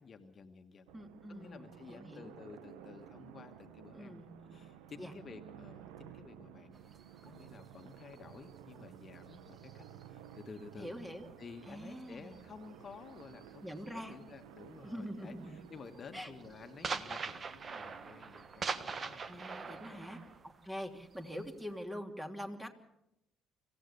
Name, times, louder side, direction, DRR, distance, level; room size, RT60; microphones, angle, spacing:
voice 1, 0.0-0.9 1.3-4.2 4.5-6.8 7.2-10.9 11.4-20.1, left 5 dB, 45° left, 7 dB, 1.6 m, -53 dB
voice 2, 0.9-2.3 4.0-4.6 5.0-5.1 10.8-11.3 11.7-12.4 13.6-14.2 14.8-15.6 16.1-16.3 19.3-22.7, equal, 10° right, 4 dB, 3.0 m, -44 dB
sound 1, 0.9-20.4, right 10 dB, 75° right, 1.1 m, -55 dB
sound 2, 6.7-10.6 10.9-14.4 14.6-15.0 15.3-21.7, right 5 dB, 40° right, 1.4 m, -44 dB
26.0 x 15.5 x 6.9 m, 0.85 s
hypercardioid pair, 50°, 0 cm